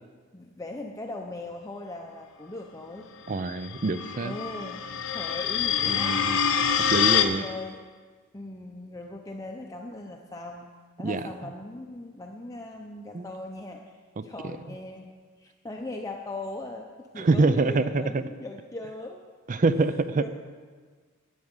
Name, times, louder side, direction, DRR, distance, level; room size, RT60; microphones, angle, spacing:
voice 1, 0.3-3.1 4.2-6.2 6.5-6.9 7.3-7.8 8.3-10.7 11.0-15.1 15.4-19.2 19.8-19.9 20.1-20.3, left 2 dB, 15° left, 1 dB, 0.6 m, -39 dB
voice 2, 3.3-4.3 5.8-6.4 6.9-7.4 11.0-11.2 13.1-13.3 17.2-18.3 19.5-20.2, right 3 dB, 40° right, 12 dB, 0.5 m, -25 dB
sound 1, 3.6-7.2, left 8 dB, 65° left, 0.8 m, -25 dB
12.5 x 7.8 x 5.5 m, 1.5 s
head